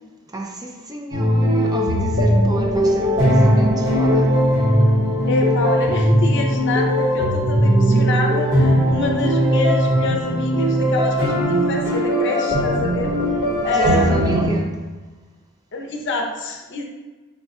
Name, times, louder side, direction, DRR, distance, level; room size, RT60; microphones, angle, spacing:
voice 1, 0.3-4.4 13.7-14.7, right 2 dB, 15° right, 1 dB, 0.4 m, -29 dB
sound 1, 1.1-14.4, equal, 50° right, 1.5 m, -18 dB
voice 2, 5.3-13.1 13.6-14.3 15.7-16.8, left 2 dB, 55° left, 1 dB, 0.6 m, -26 dB
4.2 x 2.3 x 4.1 m, 1.2 s
head